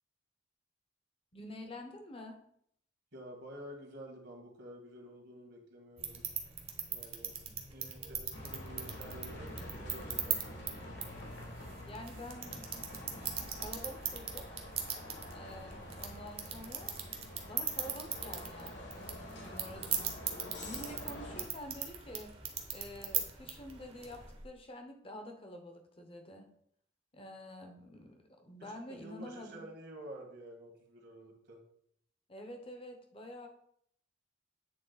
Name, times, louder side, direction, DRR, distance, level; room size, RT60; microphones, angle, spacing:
voice 1, 1.3-2.4 11.8-12.6 13.0-14.5 15.3-16.9 17.4-20.1 20.6-22.3 22.7-26.5 27.1-29.6 32.3-33.5, left 1 dB, 30° left, 4 dB, 0.9 m, -48 dB
voice 2, 3.1-6.2 6.9-7.4 7.7-10.9 28.6-31.6, right 1 dB, 60° right, 2 dB, 1.6 m, -50 dB
sound 1, 6.0-24.4, right 7 dB, 30° right, 0.9 m, -41 dB
Bus, 8.3-21.4, left 1 dB, 65° left, 1.9 m, -47 dB
8.7 x 3.7 x 4.0 m, 0.68 s
head